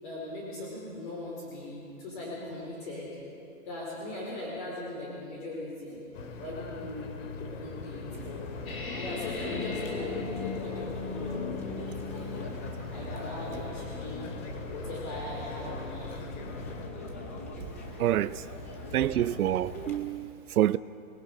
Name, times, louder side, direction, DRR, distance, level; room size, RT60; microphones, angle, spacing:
voice 1, 0.0-3.1 3.7-6.0 6.4-7.1 7.4-8.6 8.9-12.4 12.9-14.3 14.7-16.3, left 2 dB, 35° left, 4.5 m, -39 dB
sound 1, 6.1-16.9, left 4 dB, 60° left, 2.4 m, -42 dB
sound 2, 8.1-20.0, left 1 dB, 10° left, 0.5 m, -42 dB
sound 3, 8.7-12.7, left 4 dB, 85° left, 4.5 m, -37 dB
voice 2, 18.0-18.4 18.9-20.8, right 12 dB, 85° right, 0.6 m, -27 dB
29.0 x 19.5 x 5.4 m
hypercardioid pair, 170°, 43 cm